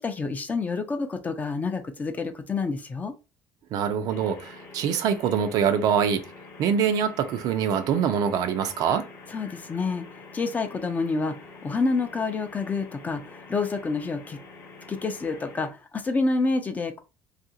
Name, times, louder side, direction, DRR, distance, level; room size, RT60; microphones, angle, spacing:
voice 1, 0.0-3.1 9.3-14.4 14.9-17.0, left 3 dB, 20° left, 0.5 m, -28 dB
voice 2, 3.7-6.3 6.6-9.1, right 7 dB, 65° right, 0.5 m, -24 dB
sound 1, 4.1-15.7, left 3 dB, 45° left, 0.9 m, -46 dB
2.8 x 2.5 x 2.7 m
cardioid pair, 135°, 7 cm